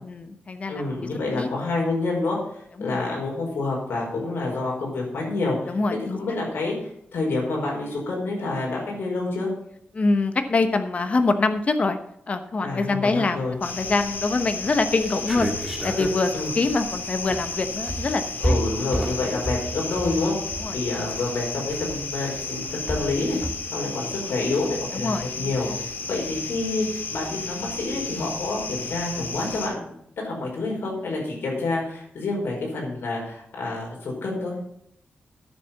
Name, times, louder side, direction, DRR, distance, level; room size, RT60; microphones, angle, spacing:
voice 1, 0.0-1.1 1.4-1.5 2.8-3.0 5.7-6.4 9.9-12.0 12.3-18.6 20.6-20.8 24.9-25.8, left 3 dB, 35° left, 9 dB, 1.0 m, -25 dB
voice 2, 0.7-2.4 2.8-9.5 12.6-13.5 16.3-16.5 18.4-20.3 20.7-23.4 23.7-25.1 25.4-25.7 26.1-26.8 27.1-29.9 30.2-34.5, left 3 dB, 75° left, -2 dB, 5.1 m, -28 dB
sound 1, 13.6-29.7, left 4 dB, 60° left, 2.2 m, -33 dB
sound 2, 13.7-14.2 14.6-14.7 14.9-23.5, right 1 dB, 5° right, 1.9 m, -31 dB
10.0 x 6.8 x 7.2 m, 0.73 s
wide cardioid pair, 165°, 4 cm